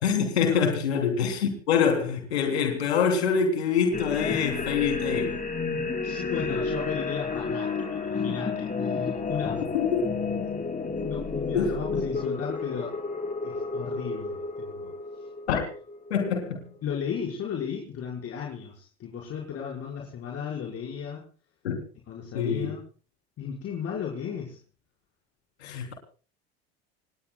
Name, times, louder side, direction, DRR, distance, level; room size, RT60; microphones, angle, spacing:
voice 1, 0.0-5.3 9.7-10.0 11.5-12.0 15.5-15.6 16.1-16.6 21.6-21.8 22.3-22.7 25.6-25.9, left 6 dB, 90° left, 3 dB, 3.6 m, -25 dB
sound 1, 3.9-16.6, left 4 dB, 25° left, 5.0 m, -31 dB
voice 2, 6.0-9.7 10.4-10.7 11.0-13.0 13.4-14.9 15.2-15.3 16.8-21.3 22.1-22.8 23.4-24.6, left 7 dB, 50° left, -2 dB, 5.4 m, -35 dB
28.5 x 19.5 x 2.4 m, 0.40 s
hypercardioid pair, 80°, 32 cm